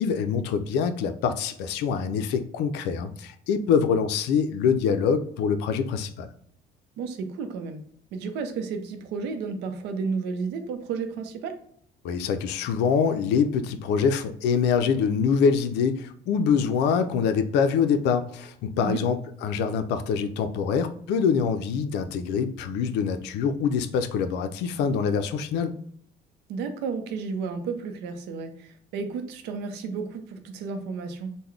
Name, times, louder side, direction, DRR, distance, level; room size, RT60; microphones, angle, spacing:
voice 1, 0.0-6.3 12.0-25.7, left 6 dB, 85° left, 9 dB, 0.4 m, -25 dB
voice 2, 7.0-7.8 8.1-11.6 18.7-19.0 26.5-31.4, right 5 dB, 85° right, 7 dB, 0.6 m, -32 dB
3.8 x 2.1 x 3.2 m, 0.62 s
cardioid pair, 110°, 17 cm